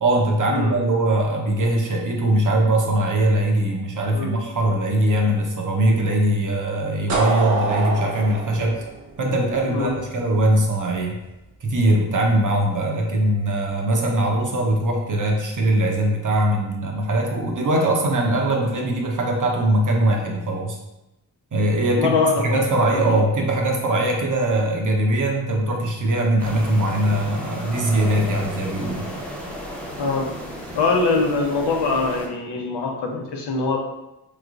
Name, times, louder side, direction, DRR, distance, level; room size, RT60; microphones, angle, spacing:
voice 1, 0.0-8.9 9.2-11.2 11.6-20.8 21.5-29.1, right 1 dB, 45° right, 1 dB, 0.8 m, -21 dB
sound 1, 7.1-9.9, right 3 dB, 80° right, 0.9 m, -25 dB
voice 2, 9.6-10.0 22.0-22.6 22.9-23.2 30.0-30.3 30.7-33.8, left 4 dB, 65° left, 1 dB, 0.8 m, -23 dB
sound 2, 26.4-32.3, equal, 5° left, 0.9 m, -33 dB
3.2 x 3.2 x 2.5 m, 0.93 s
supercardioid pair, 40°, 45 cm